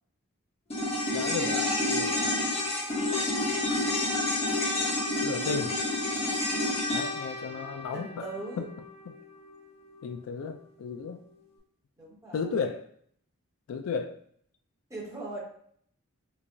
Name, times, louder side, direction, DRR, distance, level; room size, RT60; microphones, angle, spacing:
sound 1, 0.7-9.2 9.5-9.6, left 2 dB, 30° left, 1.0 m, -29 dB
voice 1, 1.1-2.4 5.2-5.8 6.9-8.3 10.0-11.2 12.3-12.9 13.7-14.2, left 5 dB, 70° left, 6 dB, 0.3 m, -34 dB
voice 2, 2.0-2.3 7.9-8.7 12.0-12.6 14.9-15.4, right 2 dB, 15° right, -5 dB, 1.1 m, -40 dB
4.5 x 2.3 x 2.6 m, 0.63 s
head